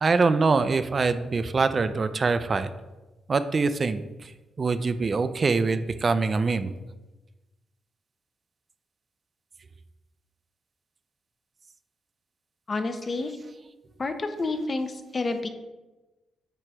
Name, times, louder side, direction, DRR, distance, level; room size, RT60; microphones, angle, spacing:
voice 1, 0.0-2.7 3.3-4.0 4.6-6.7, right 4 dB, 30° right, 12 dB, 0.4 m, -24 dB
voice 2, 12.7-13.4 14.0-15.5, left 3 dB, 30° left, 7 dB, 0.6 m, -29 dB
9.0 x 3.0 x 4.8 m, 1.1 s
cardioid pair, 145°, 0 cm